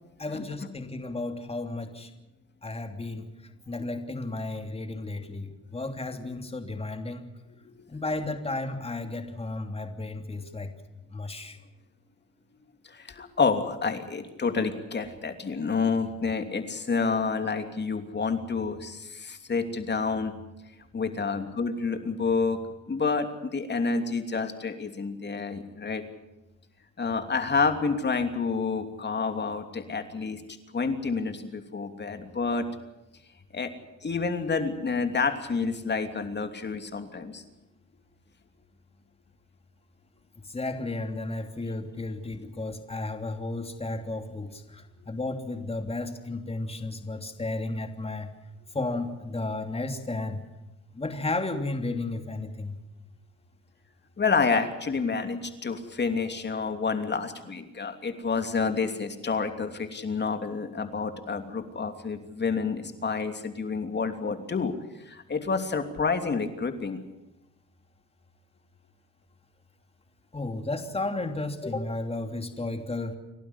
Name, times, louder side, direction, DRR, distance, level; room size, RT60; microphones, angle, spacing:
voice 1, 0.2-2.1 2.6-3.3 3.7-7.2 7.9-10.7 11.1-11.6 40.4-48.3 48.7-50.4 50.9-52.8 70.3-73.2, left 2 dB, 20° left, 5 dB, 3.1 m, -33 dB
voice 2, 12.9-20.3 20.9-22.6 22.9-26.0 27.0-30.4 30.7-32.6 33.5-33.7 34.0-37.4 54.2-64.7 65.0-67.0, left 4 dB, 35° left, 7 dB, 3.0 m, -29 dB
29.5 x 12.0 x 9.9 m, 0.96 s
cardioid pair, 90°, 30 cm